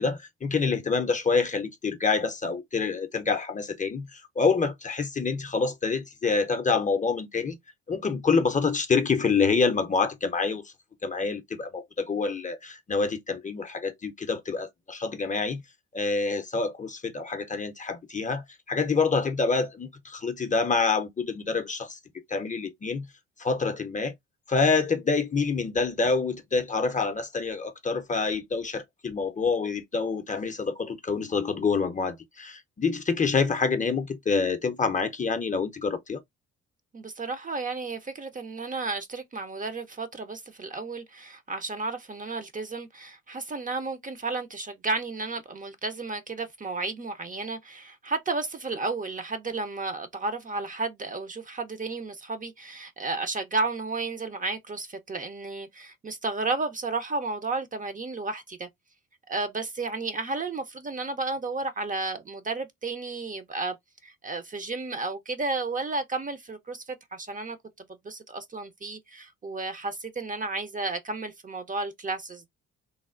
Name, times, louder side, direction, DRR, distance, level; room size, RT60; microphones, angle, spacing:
voice 1, 0.0-7.6 7.9-10.7 11.0-15.6 15.9-22.0 22.3-23.1 23.4-24.1 24.5-36.2, left 4 dB, 25° left, 0.6 m, -27 dB
voice 2, 36.9-58.7 59.3-63.7 64.0-67.6 68.0-72.5, right 3 dB, 25° right, 0.6 m, -32 dB
3.2 x 2.1 x 2.4 m
hypercardioid pair, 55°, 30 cm